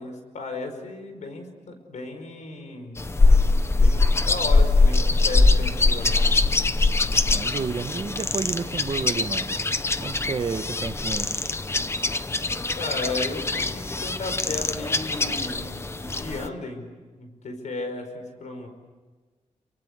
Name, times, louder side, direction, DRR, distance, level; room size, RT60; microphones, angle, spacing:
voice 1, 0.0-3.1 3.8-6.1 12.7-16.9 17.1-18.7, left 3 dB, 70° left, 6 dB, 5.1 m, -35 dB
sound 1, 3.0-16.5, left 3 dB, 20° left, 0.8 m, -22 dB
voice 2, 7.3-9.5 10.0-11.3, right 5 dB, 40° right, 8 dB, 1.3 m, -30 dB
27.5 x 25.0 x 8.2 m, 1.4 s
wide cardioid pair, 170°, 13 cm